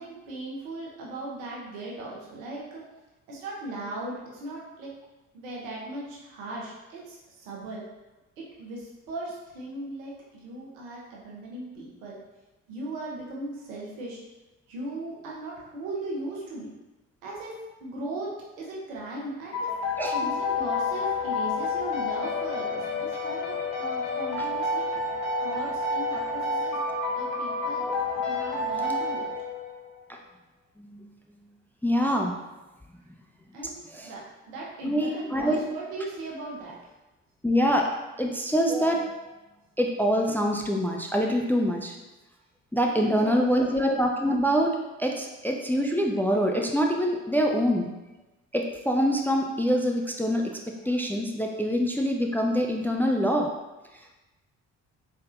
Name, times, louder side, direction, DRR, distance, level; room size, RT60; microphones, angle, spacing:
voice 1, 0.0-2.8 3.3-4.9 5.3-7.8 8.4-12.2 12.7-14.2 14.7-16.7 17.2-17.5 17.8-19.7 20.1-24.9 25.4-26.8 27.1-27.9 28.2-29.3 33.5-33.7 34.0-36.9 42.9-43.8, right 2 dB, 80° right, -4 dB, 1.0 m, -38 dB
sound 1, 19.5-29.9, left 3 dB, 75° left, 0.8 m, -29 dB
voice 2, 20.0-20.3 27.8-27.9 30.8-30.9 31.8-32.3 33.9-34.1 34.8-35.6 37.4-37.9 38.2-39.1 39.8-41.9 42.7-47.9 48.5-50.6 50.9-53.5, equal, 5° left, 1 dB, 0.4 m, -25 dB
4.1 x 3.5 x 2.5 m, 1.0 s
hypercardioid pair, 45°, 41 cm